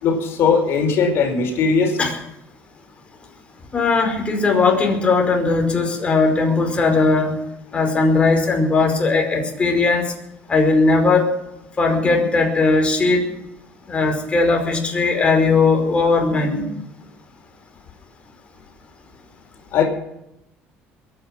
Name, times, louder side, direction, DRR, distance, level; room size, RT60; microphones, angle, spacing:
voice 1, 0.0-2.0 19.7-19.8, left 5 dB, 60° left, 2 dB, 5.1 m, -18 dB
voice 2, 3.7-7.4 7.7-10.1 10.5-11.3 11.8-13.3 13.9-16.7, left 3 dB, 25° left, 2 dB, 5.2 m, -18 dB
22.0 x 10.0 x 6.1 m, 0.85 s
cardioid pair, 115°, 5 cm